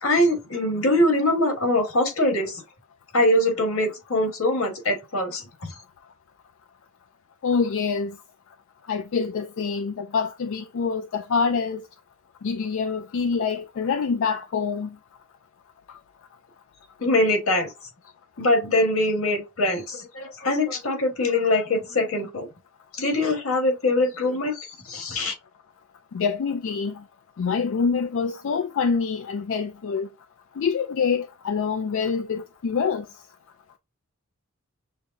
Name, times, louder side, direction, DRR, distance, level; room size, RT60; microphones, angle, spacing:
voice 1, 0.0-2.6 3.1-5.7 17.0-17.7 18.4-22.5 22.9-25.3, left 1 dB, 90° left, 1.7 m, -23 dB
voice 2, 7.4-8.2 8.9-11.8 12.4-15.0 15.9-16.0 26.1-27.0 27.4-30.1 30.6-33.1, left 5 dB, 65° left, 0.4 m, -26 dB
6.4 x 2.1 x 2.6 m
head